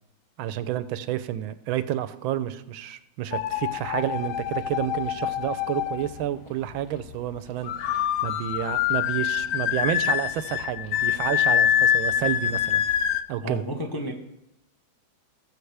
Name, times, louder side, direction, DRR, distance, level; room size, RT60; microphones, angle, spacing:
voice 1, 0.4-12.8 13.3-13.6, right 12 dB, 90° right, 13 dB, 1.4 m, -30 dB
sound 1, 3.3-6.2 7.6-13.2, left 10 dB, 75° left, 1.0 m, -25 dB
voice 2, 13.4-14.1, left 1 dB, 20° left, 1 dB, 0.6 m, -31 dB
19.5 x 6.7 x 3.4 m, 0.85 s
omnidirectional pair, 2.1 m